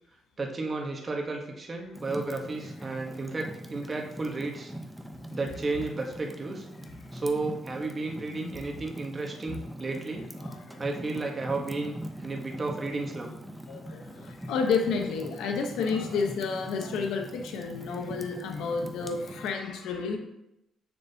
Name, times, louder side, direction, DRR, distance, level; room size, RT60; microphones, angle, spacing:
voice 1, 0.4-4.7 5.3-6.7 7.1-10.3 10.8-12.0 12.2-13.3 18.0-18.2, right 3 dB, 30° right, 1 dB, 1.2 m, -33 dB
Fire, 1.9-19.5, equal, 5° right, 0.7 m, -42 dB
voice 2, 13.7-20.2, left 5 dB, 85° left, 3 dB, 0.9 m, -30 dB
6.6 x 6.5 x 2.8 m, 0.86 s
cardioid pair, 90°, 0 cm